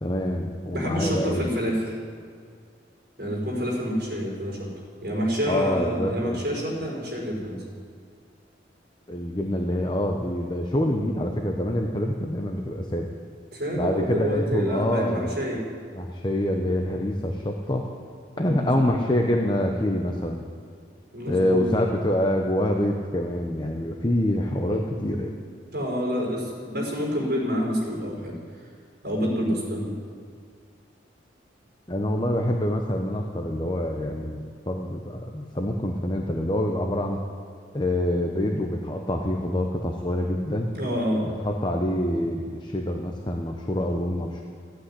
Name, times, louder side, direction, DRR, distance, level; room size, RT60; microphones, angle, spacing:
voice 1, 0.0-1.5 5.5-6.4 9.1-13.1 13.7-15.4 16.0-17.9 18.4-20.4 21.3-25.3 31.9-37.2 37.7-40.7 41.2-44.4, left 1 dB, 25° left, 2 dB, 1.0 m, -26 dB
voice 2, 0.7-1.9 3.2-4.7 5.0-7.6 13.5-15.6 18.3-19.0 21.1-21.7 25.7-28.4 29.0-29.9 40.7-41.3, equal, 55° right, -2 dB, 5.4 m, -28 dB
15.5 x 8.9 x 9.9 m, 2.2 s
head